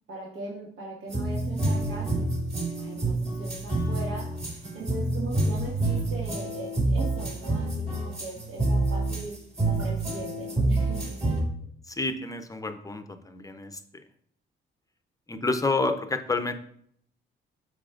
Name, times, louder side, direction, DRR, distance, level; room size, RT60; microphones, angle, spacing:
voice 1, 0.1-2.3 2.8-4.3 4.7-9.3 9.6-11.2, right 2 dB, 70° right, -4 dB, 1.7 m, -39 dB
sound 1, 1.1-11.4, right 2 dB, 30° right, 2.1 m, -28 dB
voice 2, 11.8-13.8 15.3-16.5, left 3 dB, 15° left, 8 dB, 0.6 m, -29 dB
7.5 x 6.3 x 2.5 m, 0.66 s
cardioid pair, 90°, 20 cm